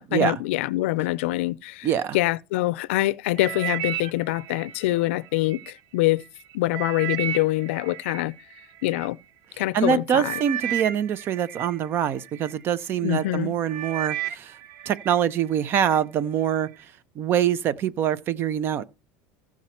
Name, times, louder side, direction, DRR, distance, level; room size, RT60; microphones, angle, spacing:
voice 1, 0.0-1.9 2.1-6.2 6.5-8.3 8.8-9.2 9.6-10.4 13.0-13.5, left 18 dB, 80° left, 0.5 m, -25 dB
voice 2, 1.8-2.2 9.7-14.5 14.9-16.7 17.2-18.8, right 9 dB, 35° right, 0.7 m, -24 dB
sound 1, 3.4-5.7 6.2-9.1 9.8-9.9 10.2-12.6 13.1-13.4 13.7-15.2 15.5-16.0 16.6-16.7, right 11 dB, 65° right, 0.9 m, -33 dB
15.0 x 5.9 x 4.4 m
supercardioid pair, 145°, 6 cm